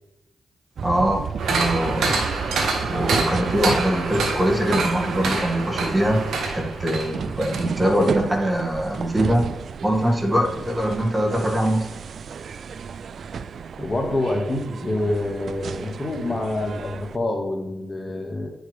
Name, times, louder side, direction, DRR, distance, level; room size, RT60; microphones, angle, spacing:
voice 1, 0.8-1.2 1.5-2.2 2.8-6.2 6.5-9.5 9.8-11.9, equal, 20° right, 1 dB, 2.2 m, -22 dB
sound 1, 0.8-17.2, right 6 dB, 70° right, 0.3 m, -33 dB
sound 2, 1.4-7.7 8.0-8.1, right 3 dB, 90° right, 1.5 m, -26 dB
voice 2, 13.8-18.5, left 2 dB, 30° left, 1 dB, 1.9 m, -26 dB
9.4 x 6.5 x 3.5 m, 0.92 s
cardioid pair, 60°, 0 cm